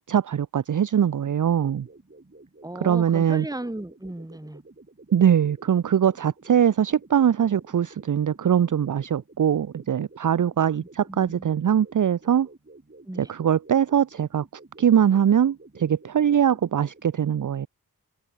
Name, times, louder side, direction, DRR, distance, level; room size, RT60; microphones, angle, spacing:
voice 1, 0.0-1.9 2.8-3.5 5.1-12.5 13.2-14.4 14.8-17.7, right 9 dB, 50° right, 0.6 m, -22 dB
sound 1, 1.2-17.1, right 2 dB, 30° right, 7.9 m, -51 dB
voice 2, 2.6-4.6 10.8-11.5 13.1-13.3, right 1 dB, 10° right, 2.2 m, -36 dB
wide cardioid pair, 65°, 39 cm